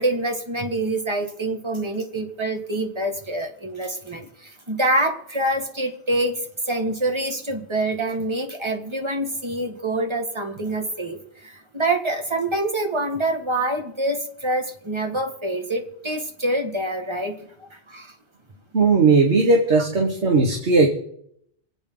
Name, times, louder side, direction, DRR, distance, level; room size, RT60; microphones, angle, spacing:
voice 1, 0.0-6.3 6.7-18.1, right 1 dB, 25° right, 3 dB, 2.0 m, -26 dB
voice 2, 18.7-20.9, right 3 dB, 90° right, 2 dB, 1.9 m, -17 dB
27.0 x 9.2 x 3.9 m, 0.72 s
omnidirectional pair, 1.1 m